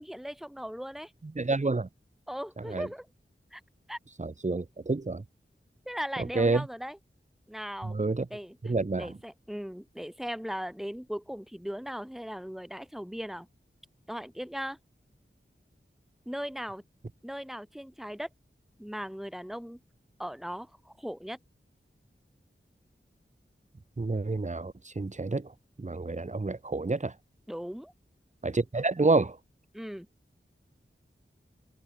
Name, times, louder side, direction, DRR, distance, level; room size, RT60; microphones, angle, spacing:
voice 1, 0.0-1.1 2.3-3.1 3.5-3.6 3.9-4.0 5.8-7.0 7.5-8.0 8.3-13.5 14.1-14.8 16.2-16.8 17.2-18.3 18.8-19.8 20.2-21.4 27.5-27.9 29.7-30.1, equal, ahead, 1.6 m, -38 dB
voice 2, 1.2-1.9 2.6-2.9 4.2-5.2 6.4-6.7 7.8-8.3 8.6-9.2 24.0-25.5 25.8-27.1 28.4-29.4, right 3 dB, 35° right, 0.8 m, -28 dB
wide cardioid pair, 55°, 21 cm